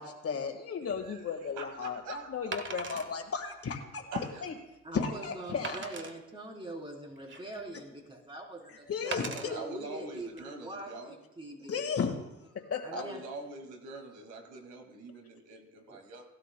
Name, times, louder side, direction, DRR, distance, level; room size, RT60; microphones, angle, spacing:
voice 1, 0.0-4.0 4.4-4.5 4.9-5.9 8.9-9.6 11.7-12.1 12.5-13.0, left 6 dB, 50° left, 5 dB, 1.8 m, -34 dB
Wood, 0.9-1.1 2.5-3.1 3.7-3.8 4.3-4.4 5.6-6.1 6.9-7.7 9.1-9.5 10.2-10.4, right 4 dB, 40° right, 1.3 m, -39 dB
voice 2, 1.0-2.2 4.1-4.4 9.2-11.1 12.9-16.2, right 2 dB, 85° right, 3 dB, 2.2 m, -43 dB
voice 3, 4.8-11.8 12.8-13.2 15.9-16.0, right 1 dB, 15° right, -1 dB, 3.8 m, -43 dB
18.0 x 12.5 x 2.3 m, 0.98 s
cardioid pair, 90°, 30 cm